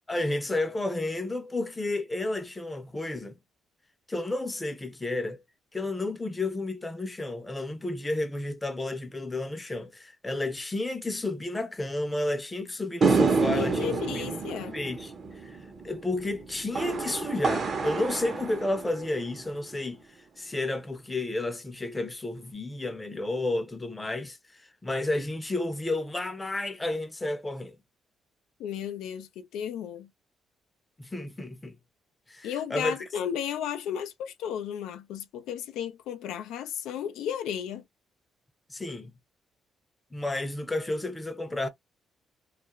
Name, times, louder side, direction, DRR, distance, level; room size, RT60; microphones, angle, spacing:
voice 1, 0.1-3.4 4.1-5.4 5.7-14.4 14.7-15.1 15.4-20.0 20.4-27.8 31.0-31.8 32.3-33.0 38.7-39.1 40.1-41.7, left 2 dB, 15° left, 0.6 m, -31 dB
sound 1, 13.0-19.5, right 4 dB, 45° right, 0.8 m, -28 dB
voice 2, 13.5-14.7 28.6-30.1 32.4-37.8, left 9 dB, 90° left, 0.4 m, -34 dB
2.4 x 2.1 x 2.9 m
cardioid pair, 90°, 0 cm